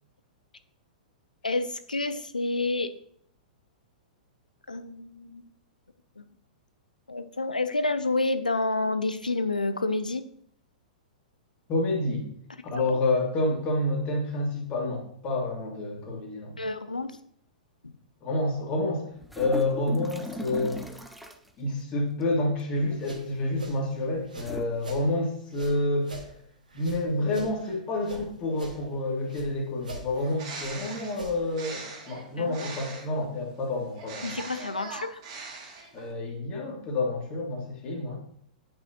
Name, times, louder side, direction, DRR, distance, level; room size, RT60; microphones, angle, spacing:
voice 1, 1.4-2.9 4.7-5.4 6.2-6.3 7.1-10.2 12.7-12.8 16.6-17.2 17.8-17.9 32.4-32.7 34.2-35.2, left 2 dB, 80° left, 12 dB, 0.6 m, -29 dB
voice 2, 11.7-12.3 12.6-16.6 18.2-19.0 19.4-20.8 21.6-26.2 26.7-34.3 35.9-38.2, left 2 dB, 30° left, -1 dB, 2.0 m, -28 dB
sound 1, 19.2-21.5 22.8-23.2 24.3-24.7, left 1 dB, ahead, 0.6 m, -38 dB
sound 2, 22.8-25.1 25.5-28.2 28.5-29.5 29.8-31.6, right 2 dB, 75° right, 1.8 m, -42 dB
Bird, 30.1-33.2 33.9-36.1, right 4 dB, 45° right, 2.3 m, -41 dB
9.0 x 5.6 x 2.9 m, 0.66 s
figure-of-eight pair, 105°, 4 cm